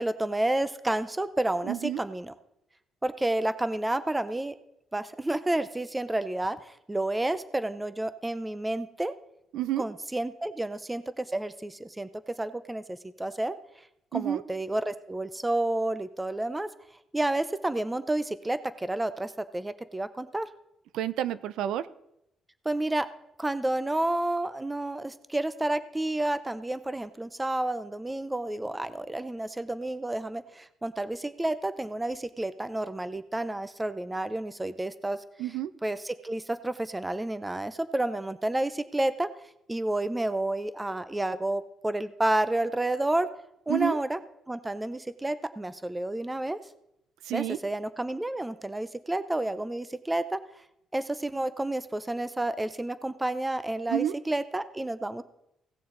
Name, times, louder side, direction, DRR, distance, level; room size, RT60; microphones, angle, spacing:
voice 1, 0.0-2.3 3.0-4.6 4.9-9.1 9.8-13.6 14.1-16.7 17.1-20.5 22.6-23.1 23.4-35.2 35.8-39.3 39.7-43.3 43.7-44.2 44.5-46.6 47.3-50.4 50.9-55.2, right 1 dB, 15° right, 13 dB, 0.6 m, -30 dB
voice 2, 1.7-2.0 9.5-9.9 14.1-14.4 20.9-21.8 35.4-35.7 43.7-44.0 47.3-47.6 53.9-54.1, right 11 dB, 85° right, 15 dB, 0.5 m, -29 dB
17.0 x 6.9 x 3.8 m, 0.81 s
cardioid pair, 90°, 0 cm